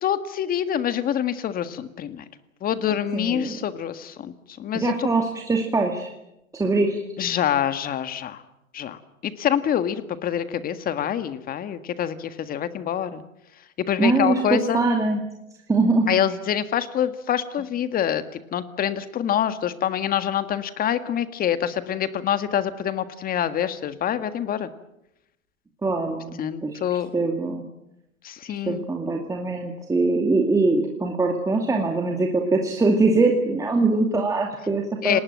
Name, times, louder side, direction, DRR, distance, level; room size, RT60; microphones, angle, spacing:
voice 1, 0.0-2.2 2.6-5.1 7.2-8.4 8.7-13.2 13.8-14.8 16.1-24.7 26.4-27.1 28.2-28.8 35.0-35.2, left 9 dB, 20° left, 11 dB, 1.7 m, -26 dB
voice 2, 3.1-3.6 4.7-6.1 6.5-7.0 14.0-15.2 15.7-16.0 25.8-26.8 27.1-27.6 28.7-35.2, right 3 dB, 10° right, 2 dB, 2.3 m, -22 dB
30.0 x 19.5 x 7.6 m, 0.87 s
hypercardioid pair, 120°, 40 cm